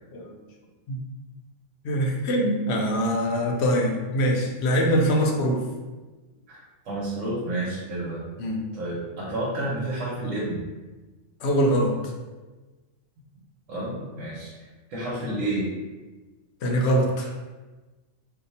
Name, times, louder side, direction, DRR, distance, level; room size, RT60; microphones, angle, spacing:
voice 1, 1.8-5.6 8.4-8.6 11.4-12.0 16.6-17.3, equal, 65° left, 1 dB, 0.8 m, -23 dB
voice 2, 6.9-8.3 8.7-10.6 13.7-15.7, right 1 dB, 85° right, -6 dB, 1.1 m, -30 dB
2.7 x 2.2 x 4.0 m, 1.2 s
omnidirectional pair, 1.3 m